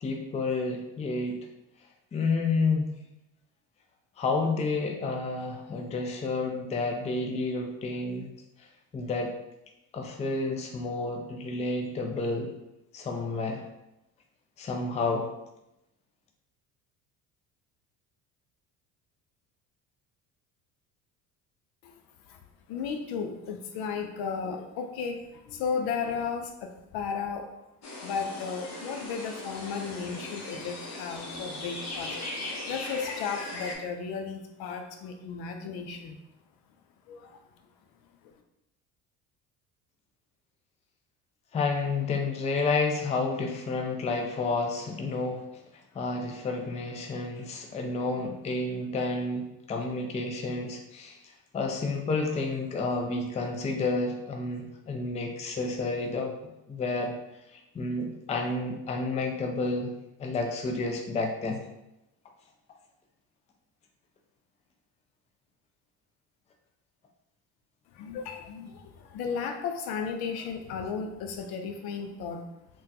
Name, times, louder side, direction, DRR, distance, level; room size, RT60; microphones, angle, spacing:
voice 1, 0.0-1.5 2.1-2.9 4.2-8.3 8.6-8.7 8.9-9.3 9.9-12.5 12.9-13.6 14.6-15.3 41.5-45.4 45.9-56.3 56.7-57.1 57.5-59.9 60.2-61.6, left 3 dB, 15° left, 3 dB, 0.4 m, -30 dB
voice 2, 22.7-27.5 28.0-36.2 37.1-37.4 67.9-72.4, left 6 dB, 65° left, 5 dB, 0.6 m, -34 dB
sound 1, 27.8-33.7, left 2 dB, 40° left, 1.0 m, -38 dB
3.6 x 2.3 x 2.7 m, 0.89 s
hypercardioid pair, 70°, 42 cm